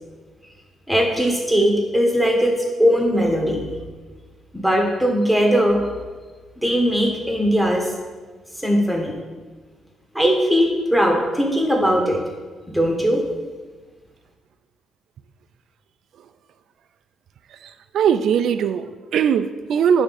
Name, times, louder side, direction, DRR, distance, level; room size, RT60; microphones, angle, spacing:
voice 1, 0.9-2.5 2.8-3.6 4.5-5.8 6.6-7.8 8.6-9.1 10.1-12.2 12.7-13.2, equal, ahead, 0 dB, 1.6 m, -19 dB
voice 2, 17.5-20.0, right 8 dB, 70° right, 12 dB, 0.4 m, -20 dB
10.5 x 3.6 x 4.2 m, 1.4 s
cardioid pair, 90°, 0 cm